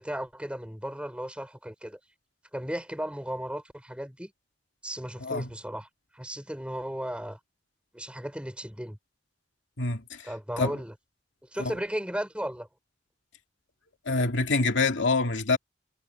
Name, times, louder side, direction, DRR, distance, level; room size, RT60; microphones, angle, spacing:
voice 1, 0.0-2.0 2.5-4.3 4.8-5.9 6.1-7.4 7.9-9.0 10.2-10.9 11.5-12.7, equal, 5° right, 5.4 m, -35 dB
voice 2, 9.8-10.3 10.6-10.7 11.6-11.7 14.1-15.6, left 3 dB, 80° left, 2.3 m, -26 dB
head